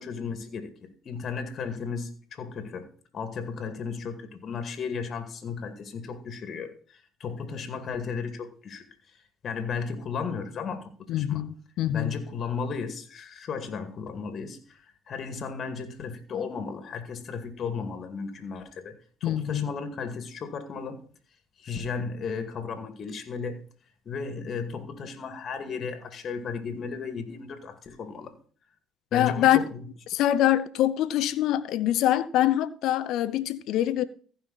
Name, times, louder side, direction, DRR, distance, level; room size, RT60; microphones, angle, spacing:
voice 1, 0.0-2.9 3.1-8.9 9.1-11.4 11.9-21.0 21.6-23.6 24.1-28.3 29.1-29.8, left 5 dB, 50° left, 2.2 m, -35 dB
voice 2, 11.1-12.1 19.2-19.7 29.1-29.6 30.1-34.0, left 12 dB, 70° left, 0.8 m, -24 dB
15.0 x 5.7 x 4.1 m
supercardioid pair, 70°, 0 cm